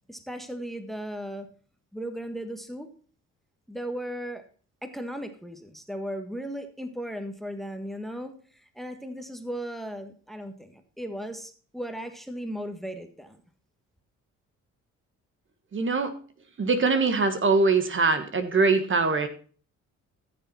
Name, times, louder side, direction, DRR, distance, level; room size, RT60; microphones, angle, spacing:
voice 1, 0.1-1.5 1.9-2.9 3.7-4.4 4.8-13.4, equal, ahead, 7 dB, 1.5 m, -36 dB
voice 2, 15.7-16.1 16.6-19.3, right 4 dB, 40° right, 9 dB, 1.5 m, -22 dB
14.5 x 6.9 x 4.2 m, 0.41 s
cardioid pair, 90°, 30 cm